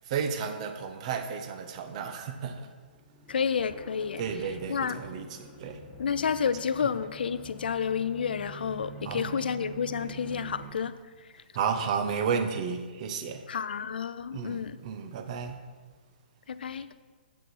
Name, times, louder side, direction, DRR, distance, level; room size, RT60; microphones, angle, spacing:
voice 1, 0.0-2.7 3.6-3.7 4.2-5.8 6.8-7.0 9.0-9.7 10.0-10.1 11.5-13.5 14.3-15.6, right 6 dB, 40° right, 8 dB, 0.9 m, -33 dB
sound 1, 2.9-10.7, right 3 dB, 10° left, 1.6 m, -46 dB
voice 2, 3.3-4.2 4.7-5.0 6.0-10.9 13.5-14.8 16.5-16.9, left 7 dB, 65° left, 13 dB, 0.5 m, -30 dB
9.0 x 8.2 x 4.3 m, 1.4 s
figure-of-eight pair, 125°, 6 cm